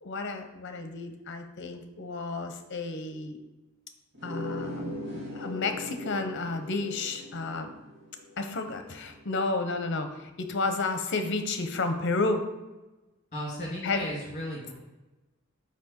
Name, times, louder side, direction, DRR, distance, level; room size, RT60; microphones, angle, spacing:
voice 1, 0.0-3.4 4.2-7.7 8.4-12.5 13.8-14.0, left 3 dB, 60° left, 7 dB, 0.8 m, -31 dB
sound 1, 4.1-9.4, left 1 dB, 65° right, 2.3 m, -40 dB
voice 2, 13.3-14.7, equal, 35° left, -4 dB, 2.4 m, -35 dB
6.0 x 5.2 x 4.4 m, 1.1 s
head